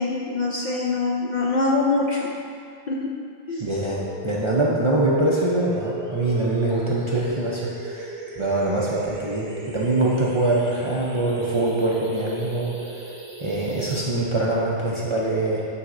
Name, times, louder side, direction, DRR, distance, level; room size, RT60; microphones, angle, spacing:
voice 1, 0.0-2.3 2.9-3.1 3.5-3.7, left 3 dB, 55° left, -3 dB, 0.5 m, -24 dB
voice 2, 3.6-12.8 13.4-15.7, right 2 dB, 35° right, -6 dB, 0.5 m, -23 dB
sound 1, 4.0-14.0, right 1 dB, 75° right, 1.3 m, -36 dB
9.3 x 4.1 x 2.6 m, 2.4 s
omnidirectional pair, 1.2 m